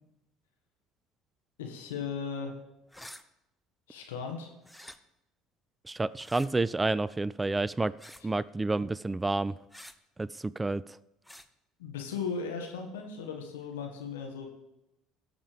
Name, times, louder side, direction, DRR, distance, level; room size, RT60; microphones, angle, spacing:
voice 1, 1.6-2.6 3.9-4.5 11.8-14.5, left 5 dB, 80° left, 2 dB, 1.7 m, -37 dB
sound 1, 2.9-3.2 4.6-5.0 6.2-6.5 8.0-8.3 9.7-10.0 11.2-11.5, left 1 dB, 5° left, 0.8 m, -48 dB
voice 2, 5.9-7.9 8.2-9.5 10.2-10.8, right 2 dB, 15° right, 19 dB, 0.3 m, -29 dB
18.0 x 7.2 x 3.5 m, 0.90 s
hypercardioid pair, 65°, 0 cm